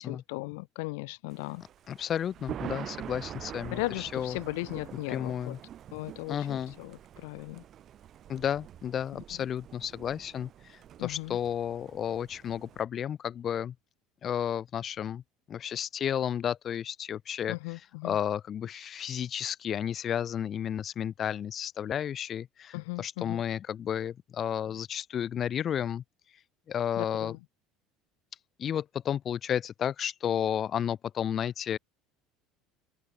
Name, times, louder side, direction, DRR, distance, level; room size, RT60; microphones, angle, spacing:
voice 1, 0.0-1.6 3.7-5.6 5.9-7.6 11.0-11.4 17.5-18.2 22.7-23.4 27.0-27.4, left 28 dB, 80° left, 0.7 m, -37 dB
Thunder, 1.3-12.8, right 10 dB, 45° right, 1.4 m, -45 dB
voice 2, 1.9-4.4 5.1-5.6 6.3-6.7 8.3-13.7 14.2-15.2 15.5-17.6 18.0-26.0 26.7-27.4 28.6-31.8, left 9 dB, 40° left, 1.0 m, -32 dB
supercardioid pair, 105°, 0 cm